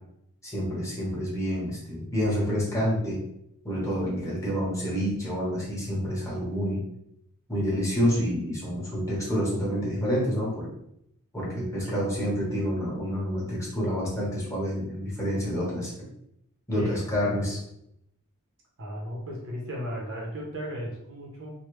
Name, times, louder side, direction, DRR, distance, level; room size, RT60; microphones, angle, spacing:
voice 1, 0.4-3.2 3.6-6.8 7.5-10.7 11.3-16.1 16.7-17.6, equal, 15° left, -6 dB, 1.1 m, -28 dB
voice 2, 11.8-12.3 16.8-17.6 18.8-21.5, equal, 60° right, -2 dB, 0.8 m, -36 dB
3.1 x 2.2 x 3.1 m, 0.75 s
head